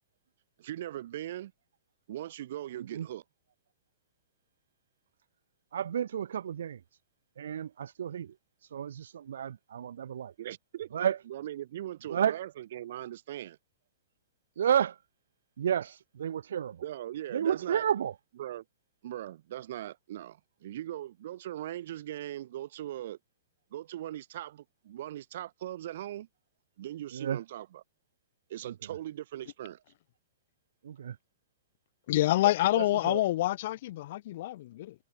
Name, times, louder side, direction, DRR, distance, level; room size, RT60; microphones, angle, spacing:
voice 1, 0.6-1.5 2.1-3.2 10.4-10.9 11.3-13.6 16.8-17.9 18.4-18.6 19.0-23.2 23.7-26.3 26.8-27.8 28.5-29.8, right 13 dB, 60° right, 5.6 m, -40 dB
voice 2, 5.7-6.8 7.4-8.3 8.7-10.3 10.9-11.2 12.1-12.4 14.6-14.9 15.6-16.8 17.3-18.1 27.1-27.4 30.8-31.2 32.8-33.2, right 9 dB, 80° right, 2.4 m, -31 dB
voice 3, 32.1-34.9, left 15 dB, 55° left, 2.8 m, -27 dB
hypercardioid pair, 150°, 0 cm